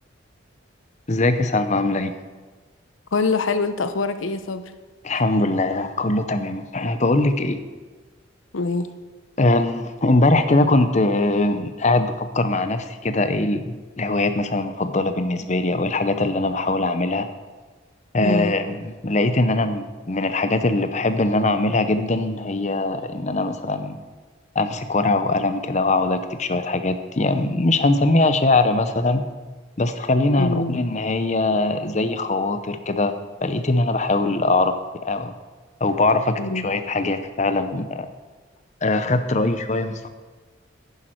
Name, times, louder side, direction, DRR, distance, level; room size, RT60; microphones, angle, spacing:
voice 1, 1.1-2.1 5.0-7.6 9.4-17.3 18.1-24.0 24.5-29.2 29.8-35.3 35.8-38.1 38.8-40.1, left 2 dB, 35° left, 9 dB, 0.7 m, -21 dB
voice 2, 3.1-4.6 8.5-8.9 18.2-18.5 30.4-30.8 36.4-36.6, left 3 dB, 80° left, 10 dB, 0.8 m, -24 dB
10.5 x 10.5 x 4.6 m, 1.3 s
head